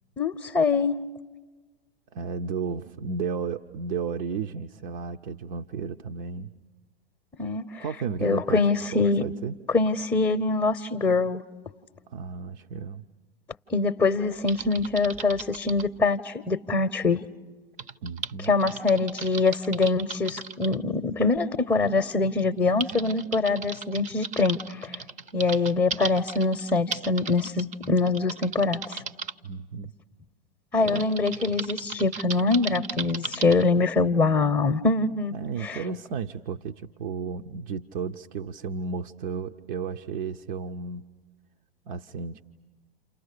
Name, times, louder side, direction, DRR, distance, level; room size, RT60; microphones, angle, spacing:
voice 1, 0.2-1.0 7.4-7.8 8.2-9.2 9.7-11.4 13.7-17.2 18.4-25.0 25.3-29.0 30.7-35.3 35.6-35.8, left 3 dB, 10° left, 4 dB, 0.8 m, -24 dB
voice 2, 2.1-6.5 7.8-8.6 8.9-9.6 12.1-13.0 18.0-18.6 29.4-29.9 30.8-31.1 35.3-41.0 41.9-42.4, right 5 dB, 55° right, 5 dB, 0.9 m, -33 dB
Typing, 14.5-15.9 17.8-20.8 21.8-21.9 22.4-29.3 30.9-33.6, right 5 dB, 25° right, 0.8 m, -36 dB
30.0 x 29.0 x 6.7 m, 1.3 s
hypercardioid pair, 105°, 29 cm